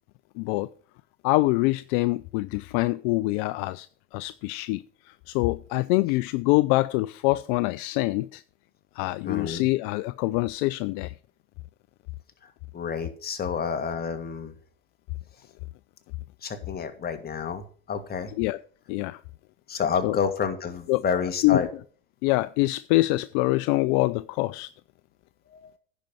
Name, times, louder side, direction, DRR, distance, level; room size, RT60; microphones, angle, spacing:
voice 1, 0.4-0.7 1.2-3.9 4.1-4.8 5.3-8.4 9.0-11.1 18.4-18.6 18.9-19.2 20.0-20.2 20.9-21.0 21.4-21.6 22.2-24.7, left 20 dB, 65° left, 0.5 m, -25 dB
voice 2, 9.2-9.7 12.7-14.5 16.4-18.3 19.7-21.7 25.5-25.7, left 6 dB, 30° left, 1.9 m, -29 dB
10.0 x 5.3 x 7.5 m
supercardioid pair, 95°, 30 cm